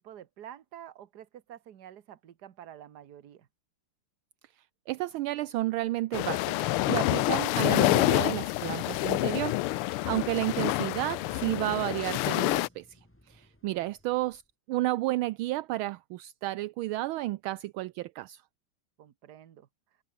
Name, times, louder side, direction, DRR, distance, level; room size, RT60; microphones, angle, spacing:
voice 1, 0.0-3.5 13.7-13.9 19.0-19.7, right 10 dB, 55° right, 1.6 m, -48 dB
voice 2, 4.9-13.0 13.3-14.4 14.7-18.4, right 17 dB, 80° right, 1.4 m, -32 dB
sound 1, 6.1-12.7, left 18 dB, 85° left, 1.5 m, -27 dB
sound 2, 9.5-14.4, left 1 dB, 5° left, 3.1 m, -55 dB
omnidirectional pair, 2.4 m